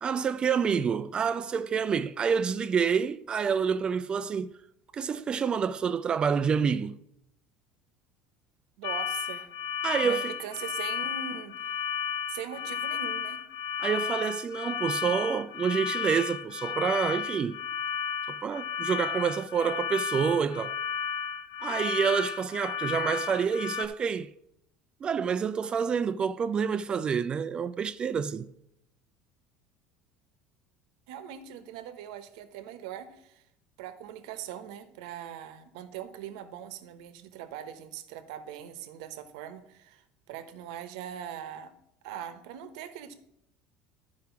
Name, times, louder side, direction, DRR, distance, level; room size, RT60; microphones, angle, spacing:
voice 1, 0.0-4.5 4.9-7.0 9.8-10.3 13.8-17.6 18.3-20.8 21.6-24.3 25.0-28.5, right 6 dB, 25° right, 0.3 m, -28 dB
sound 1, 8.8-23.9, left 8 dB, 65° left, 0.7 m, -33 dB
voice 2, 8.8-9.5 10.0-11.6 12.3-13.4 31.1-33.4 33.8-41.7 42.0-43.1, right 9 dB, 85° right, 0.9 m, -41 dB
11.5 x 4.8 x 5.8 m
cardioid pair, 140°, 4 cm